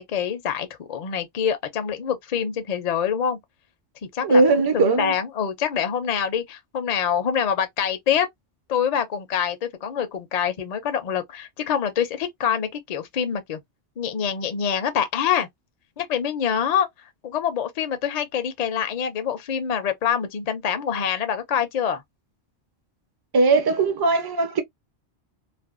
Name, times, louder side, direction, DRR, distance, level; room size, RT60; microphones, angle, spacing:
voice 1, 0.0-3.4 4.1-4.4 4.7-8.3 8.7-13.6 14.0-15.5 16.0-16.9 17.2-22.0, left 8 dB, 55° left, 0.5 m, -25 dB
voice 2, 4.2-5.1 23.3-24.6, right 3 dB, 30° right, 0.4 m, -19 dB
2.5 x 2.1 x 2.4 m
omnidirectional pair, 1.2 m